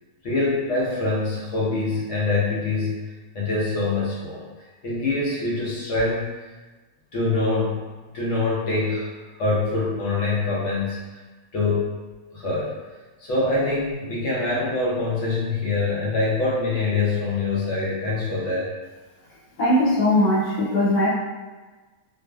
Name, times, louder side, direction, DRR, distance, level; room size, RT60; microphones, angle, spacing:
voice 1, 0.2-3.0 3.3-4.4 4.8-6.2 7.1-7.9 8.1-9.1 9.4-11.0 11.5-11.9 12.3-12.7 13.2-18.7, left 3 dB, 65° left, -5 dB, 0.8 m, -24 dB
voice 2, 19.6-21.1, left 1 dB, 85° left, -7 dB, 1.4 m, -19 dB
2.5 x 2.4 x 2.2 m, 1.3 s
omnidirectional pair, 1.6 m